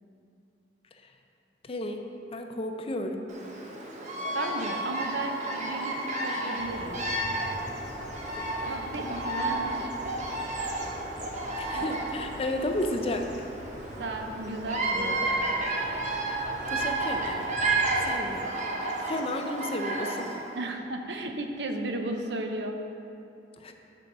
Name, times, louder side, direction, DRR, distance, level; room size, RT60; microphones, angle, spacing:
voice 1, 1.6-2.0 2.3-3.3 11.6-13.3 16.1-16.2 16.7-17.5 18.0-18.5 19.0-20.4 23.6-23.7, left 1 dB, 35° left, 4 dB, 0.5 m, -32 dB
Bird vocalization bird call bird song, 3.3-20.5, right 2 dB, 45° right, 0.9 m, -31 dB
voice 2, 4.3-7.0 8.6-9.9 14.0-15.5 20.6-22.8, right 2 dB, 75° right, 5 dB, 0.7 m, -34 dB
sound 1, 6.6-18.1, left 1 dB, 70° left, 0.8 m, -46 dB
6.8 x 4.6 x 6.4 m, 2.7 s
head